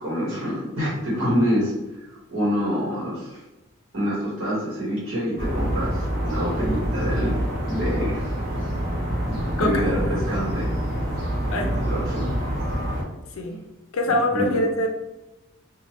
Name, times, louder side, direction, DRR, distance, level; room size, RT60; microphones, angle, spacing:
voice 1, 0.0-1.7 2.3-3.4 3.9-7.4 7.7-8.2 9.3-10.7 11.5-12.3 14.3-14.6, equal, 80° right, -6 dB, 1.0 m, -26 dB
sound 1, 5.4-13.0, equal, 40° right, 1.2 m, -26 dB
voice 2, 13.9-14.9, left 1 dB, 80° left, 3 dB, 0.4 m, -24 dB
3.2 x 2.2 x 2.8 m, 0.99 s
head